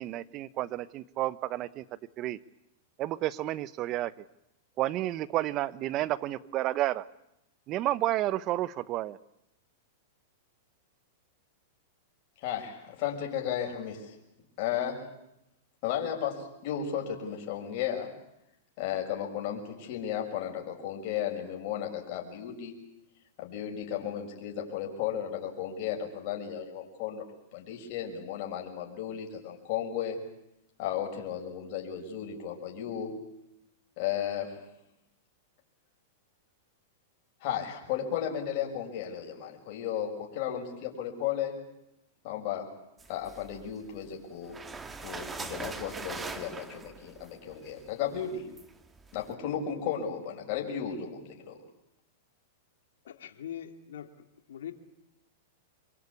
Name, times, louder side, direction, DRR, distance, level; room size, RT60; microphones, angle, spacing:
voice 1, 0.0-1.8 2.2-2.4 3.0-4.1 4.8-7.0 7.7-9.2, right 15 dB, 40° right, 17 dB, 1.0 m, -31 dB
voice 2, 12.4-14.2 14.6-15.1 15.8-18.1 18.8-22.7 23.4-27.2 27.5-30.2 30.8-33.2 34.0-34.6 37.4-41.6 42.2-42.7 43.1-44.6 45.0-48.5 49.1-51.6, left 9 dB, 50° left, 1 dB, 6.5 m, -34 dB
sound 1, 43.0-44.1 44.4-49.3, right 4 dB, 15° right, 1.8 m, -42 dB
voice 3, 53.1-54.1 54.5-54.7, left 10 dB, 80° left, 6 dB, 2.5 m, -41 dB
26.0 x 23.5 x 8.6 m, 0.83 s
hypercardioid pair, 125°, 0 cm